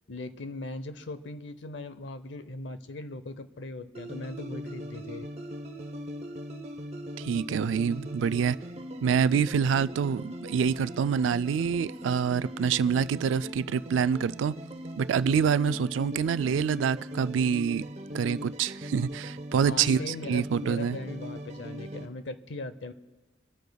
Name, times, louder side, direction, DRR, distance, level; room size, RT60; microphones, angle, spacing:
voice 1, 0.1-5.3 19.6-22.9, left 2 dB, 70° left, 0.7 m, -39 dB
sound 1, 3.9-22.1, equal, 35° right, 0.9 m, -40 dB
voice 2, 7.2-8.6 9.0-14.6 15.0-17.9 18.1-21.0, right 7 dB, 90° right, 0.3 m, -26 dB
24.5 x 13.0 x 2.3 m
head